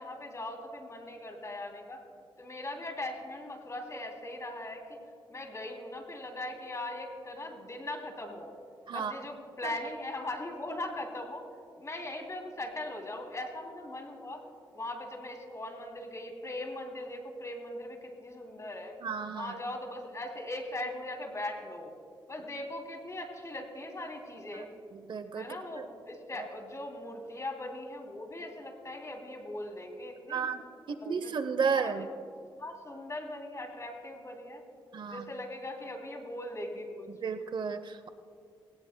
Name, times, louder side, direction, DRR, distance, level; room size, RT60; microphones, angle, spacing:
voice 1, 0.0-2.0 2.4-5.0 5.3-8.5 8.9-11.5 11.8-14.4 14.7-18.9 19.3-21.9 22.3-24.7 25.3-30.5 30.9-31.3 31.7-32.1 32.6-34.6 35.1-37.1, left 1 dB, 35° left, 2 dB, 3.0 m, -40 dB
voice 2, 19.0-19.5 25.1-25.5 25.8-25.9 30.3-30.6 30.9-32.1 34.9-35.3 37.2-38.1, right 6 dB, 60° right, 10 dB, 0.8 m, -32 dB
20.5 x 18.0 x 2.2 m, 2.3 s
cardioid pair, 70°, 9 cm